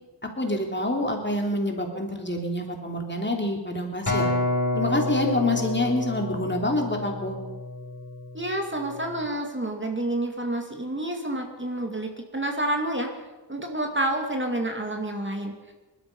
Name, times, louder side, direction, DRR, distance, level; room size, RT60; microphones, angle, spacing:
voice 1, 0.4-4.3 4.7-7.4, left 1 dB, 25° left, 2 dB, 3.3 m, -27 dB
Acoustic guitar, 4.1-8.5 9.1-9.3, left 2 dB, 45° left, 5.7 m, -28 dB
voice 2, 8.3-13.1 13.5-15.7, right 1 dB, 25° right, 3 dB, 2.4 m, -29 dB
19.5 x 12.5 x 5.5 m, 1.2 s
cardioid pair, 50°, 44 cm